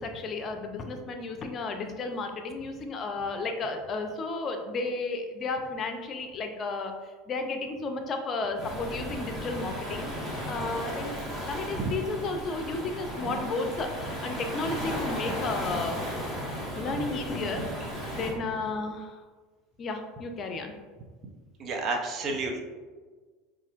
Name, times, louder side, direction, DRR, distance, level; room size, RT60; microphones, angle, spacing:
voice 1, 0.0-6.9 7.3-10.1 10.5-11.2 11.5-16.0 16.7-17.6 18.1-19.2 19.8-20.7, left 3 dB, 40° left, 5 dB, 0.5 m, -33 dB
Waves surf, 8.6-18.3, equal, 15° right, 1.5 m, -35 dB
voice 2, 21.6-22.6, right 3 dB, 45° right, 2 dB, 0.7 m, -30 dB
5.3 x 2.5 x 2.4 m, 1.4 s
hypercardioid pair, 85°, 0 cm